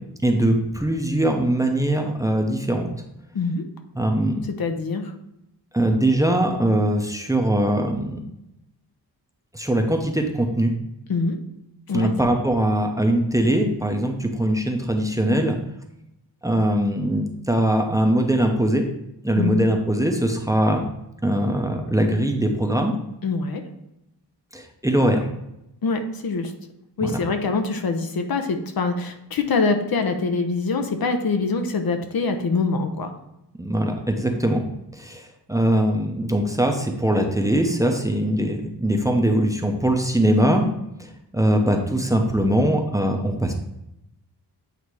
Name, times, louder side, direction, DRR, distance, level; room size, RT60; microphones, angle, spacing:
voice 1, 0.2-2.9 3.9-4.4 5.7-8.2 9.5-10.7 11.9-15.6 16.4-18.9 19.2-20.8 21.2-23.0 24.5-25.3 27.0-27.2 33.6-34.6 34.9-40.7 41.3-43.6, right 1 dB, 10° right, 3 dB, 0.7 m, -21 dB
voice 2, 3.3-3.6 4.6-5.1 11.1-11.4 11.9-12.1 19.3-19.6 23.2-23.6 25.8-26.5 27.0-33.1, left 4 dB, 60° left, 6 dB, 0.8 m, -24 dB
8.3 x 2.8 x 4.6 m, 0.85 s
wide cardioid pair, 110°, 42 cm